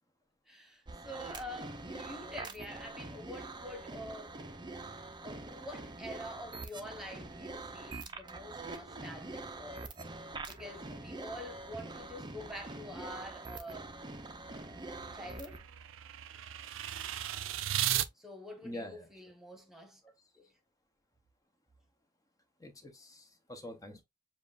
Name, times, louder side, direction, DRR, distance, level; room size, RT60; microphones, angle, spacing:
voice 1, 0.5-4.4 5.2-9.9 10.5-14.0 14.4-14.8 15.1-15.6 18.1-20.0 20.3-20.5, left 1 dB, ahead, 1.2 m, -47 dB
sound 1, 0.9-15.6, right 2 dB, 25° right, 0.6 m, -44 dB
sound 2, 14.5-18.1, right 12 dB, 70° right, 0.4 m, -36 dB
voice 2, 18.6-19.1 20.0-20.3 22.6-24.0, left 1 dB, 15° left, 0.7 m, -46 dB
7.2 x 2.5 x 2.4 m
head